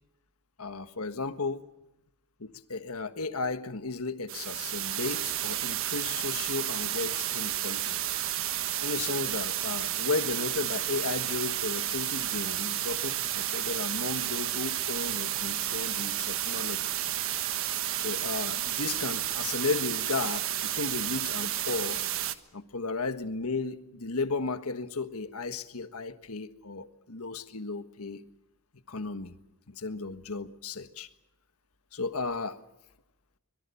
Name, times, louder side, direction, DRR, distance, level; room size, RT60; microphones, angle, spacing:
voice 1, 0.6-1.6 2.4-8.0 8.8-16.9 17.9-22.0 22.5-28.2 28.9-29.4 29.7-31.1 31.9-32.6, left 3 dB, 80° left, 1.5 m, -34 dB
sound 1, 4.3-22.3, right 12 dB, 65° right, 1.3 m, -31 dB
24.5 x 22.5 x 7.1 m
head